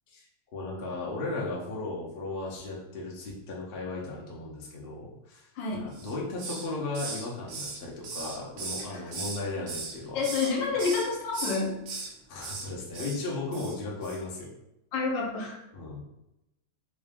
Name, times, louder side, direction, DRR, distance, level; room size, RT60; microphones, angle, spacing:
voice 1, 0.5-10.2 12.3-14.5 15.7-16.1, left 2 dB, 55° left, -4 dB, 0.6 m, -36 dB
voice 2, 5.6-5.9 8.9-9.0 10.1-11.8 14.9-15.6, left 4 dB, 70° left, -1 dB, 1.4 m, -29 dB
Hiss, 5.9-6.7 6.9-9.4 9.7-10.5 10.8-11.1 11.3-12.1 12.4-12.7 12.9-13.2 13.5-13.8 14.0-14.2, right 4 dB, 85° right, 1.5 m, -37 dB
3.8 x 2.4 x 3.5 m, 0.88 s
omnidirectional pair, 2.1 m